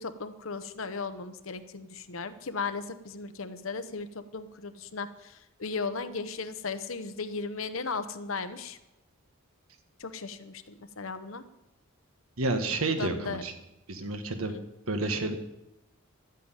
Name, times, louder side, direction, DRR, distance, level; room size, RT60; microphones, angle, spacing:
voice 1, 0.0-8.8 10.0-11.4 12.9-13.5 14.5-14.6, left 4 dB, 70° left, 11 dB, 0.9 m, -36 dB
voice 2, 12.4-13.5 13.9-14.6 14.9-15.3, right 2 dB, 80° right, 7 dB, 1.6 m, -30 dB
12.0 x 8.5 x 9.0 m, 0.95 s
head